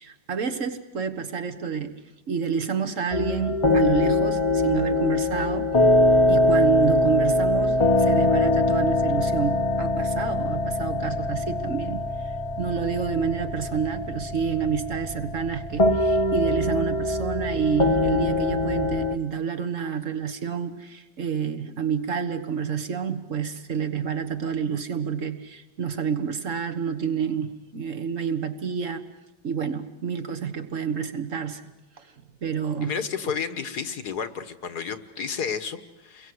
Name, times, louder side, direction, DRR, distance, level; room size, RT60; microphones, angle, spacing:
voice 1, 0.0-2.0 2.3-5.7 6.3-29.1 29.4-31.6 32.0-32.1 32.4-32.9, right 6 dB, 45° right, 7 dB, 1.7 m, -29 dB
sound 1, 3.1-19.2, left 2 dB, 20° left, 0.9 m, -23 dB
voice 2, 32.8-36.3, left 6 dB, 60° left, 11 dB, 1.8 m, -31 dB
29.5 x 22.0 x 7.9 m, 0.97 s
omnidirectional pair, 2.0 m